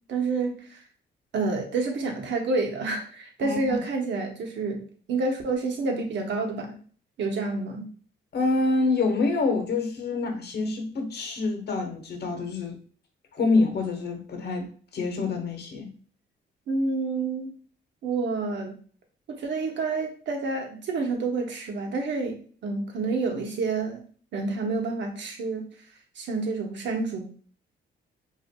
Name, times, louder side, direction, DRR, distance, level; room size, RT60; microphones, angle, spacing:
voice 1, 0.1-0.8 1.3-6.8 7.2-7.9 16.7-17.6 18.0-18.8 19.3-24.0 24.3-25.7 26.2-27.2, right 3 dB, 65° right, 1.0 m, -29 dB
voice 2, 3.4-3.8 8.3-12.8 13.3-14.7 14.9-15.9, left 3 dB, 55° left, 1.0 m, -26 dB
5.1 x 2.6 x 2.2 m
cardioid pair, 90°, 20 cm